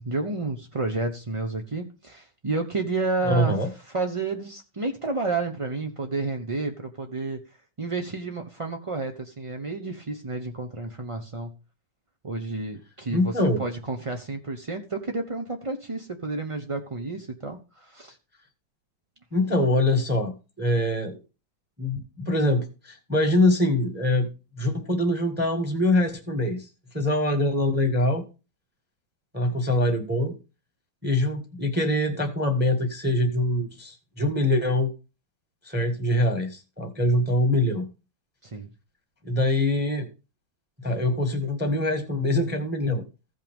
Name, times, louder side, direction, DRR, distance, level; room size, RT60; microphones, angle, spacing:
voice 1, 0.0-3.6 3.9-7.4 7.8-11.6 12.2-18.2 38.4-38.7, right 3 dB, 45° right, 0.4 m, -30 dB
voice 2, 3.2-3.7 13.1-13.6 19.3-21.2 21.8-24.3 24.6-26.7 26.9-28.2 29.3-30.3 31.0-34.9 35.6-37.9 39.2-40.1 40.8-43.0, left 1 dB, 5° right, 1.2 m, -24 dB
15.5 x 5.5 x 3.5 m
omnidirectional pair, 2.0 m